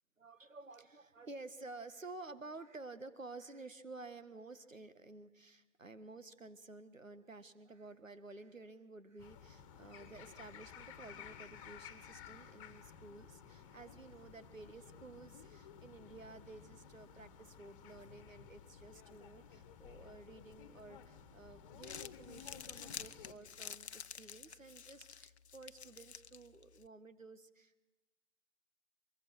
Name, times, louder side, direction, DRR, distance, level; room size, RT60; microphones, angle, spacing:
voice 1, 0.2-27.9, right 3 dB, 85° right, 13 dB, 1.6 m, -53 dB
sound 1, 9.2-23.3, left 8 dB, 25° left, 1.8 m, -55 dB
Crumpling crinkling, 21.6-26.9, left 7 dB, 60° left, 0.8 m, -50 dB
24.0 x 23.0 x 6.4 m, 1.0 s
figure-of-eight pair, 135°, 38 cm